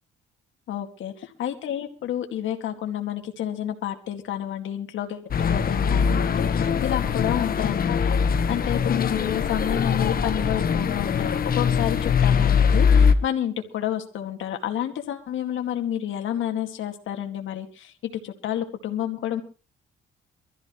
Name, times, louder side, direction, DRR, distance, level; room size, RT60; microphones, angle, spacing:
voice 1, 0.7-19.4, left 10 dB, 75° left, 5 dB, 2.1 m, -30 dB
sound 1, 5.3-13.1, left 6 dB, 50° left, 1.3 m, -22 dB
23.0 x 14.0 x 3.1 m, 0.36 s
cardioid pair, 90°, 20 cm